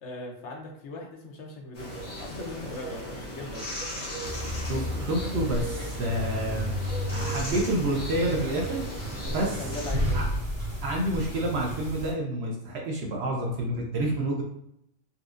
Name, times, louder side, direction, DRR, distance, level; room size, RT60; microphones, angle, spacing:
voice 1, 0.0-3.7 9.2-10.2, left 2 dB, 70° left, 0 dB, 1.0 m, -39 dB
sound 1, 1.7-9.9, equal, 85° left, 1.5 m, -37 dB
sound 2, 4.2-12.1, equal, 15° left, 1.2 m, -32 dB
voice 2, 4.6-6.7 7.1-8.8 9.3-9.5 10.1-10.2 10.8-14.4, right 1 dB, 60° right, -1 dB, 0.8 m, -28 dB
4.1 x 2.3 x 2.5 m, 0.78 s
omnidirectional pair, 1.3 m